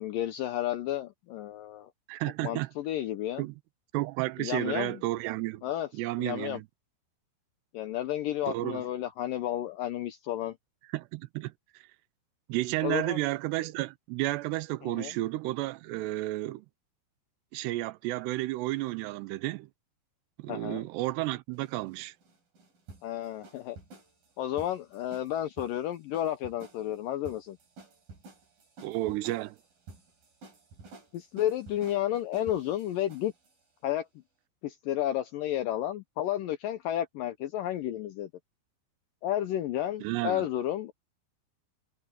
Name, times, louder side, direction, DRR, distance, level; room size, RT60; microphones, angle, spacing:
voice 1, 0.0-1.9 2.4-3.4 4.4-5.0 5.6-5.9 6.2-6.6 7.7-10.6 12.8-13.2 14.8-15.1 20.5-20.9 23.0-23.8 24.4-27.6 31.1-33.3 33.8-34.1 34.6-38.3 39.2-40.9, left 12 dB, 80° left, 2.0 m, -32 dB
voice 2, 2.1-2.7 3.4-3.5 3.9-5.6 5.9-6.7 8.5-8.8 10.9-11.5 12.5-16.7 17.5-19.7 20.4-22.1 28.8-29.6 40.0-40.5, right 18 dB, 85° right, 2.8 m, -32 dB
sound 1, 21.5-33.5, right 3 dB, 55° right, 7.3 m, -52 dB
omnidirectional pair, 4.8 m